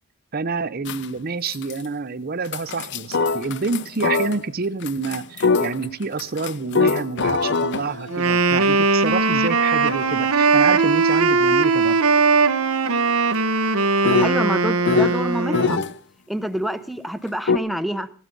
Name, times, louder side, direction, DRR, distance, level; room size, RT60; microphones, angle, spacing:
voice 1, 0.3-12.0, right 4 dB, 45° right, 0.6 m, -27 dB
sound 1, 0.8-1.2 1.5-1.8 2.4-4.4 4.8-15.9 17.5-17.6, left 4 dB, 55° left, 0.6 m, -26 dB
Wind instrument woodwind instrument, 8.1-15.8, right 4 dB, 85° right, 1.0 m, -19 dB
sound 2, 9.1-15.6, left 7 dB, 85° left, 2.8 m, -39 dB
voice 2, 14.2-15.8 16.3-18.1, equal, ahead, 0.7 m, -27 dB
16.5 x 12.5 x 5.2 m
head